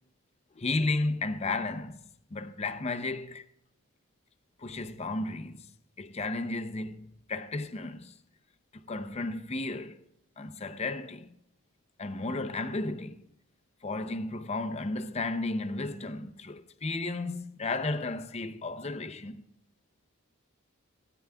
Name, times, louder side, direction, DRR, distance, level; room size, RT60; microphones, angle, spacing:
voice 1, 0.5-2.0 2.3-3.5 4.6-5.7 6.0-8.2 8.8-10.0 10.4-11.4 12.0-13.3 13.8-19.4, left 2 dB, 30° left, 0.6 m, -33 dB
16.5 x 10.0 x 2.3 m
head